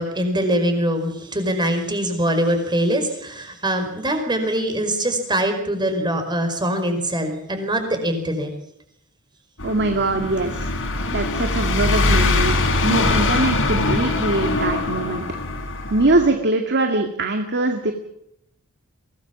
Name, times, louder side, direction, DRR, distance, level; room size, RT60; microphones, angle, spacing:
voice 1, 0.0-8.5, right 1 dB, 20° right, 6 dB, 5.1 m, -23 dB
sound 1, 9.6-16.3, left 2 dB, 65° left, 4.3 m, -22 dB
voice 2, 9.6-10.7 11.1-12.6 12.8-15.2 15.9-17.9, right 2 dB, 55° right, 5 dB, 2.1 m, -22 dB
23.5 x 18.5 x 7.3 m, 0.77 s
head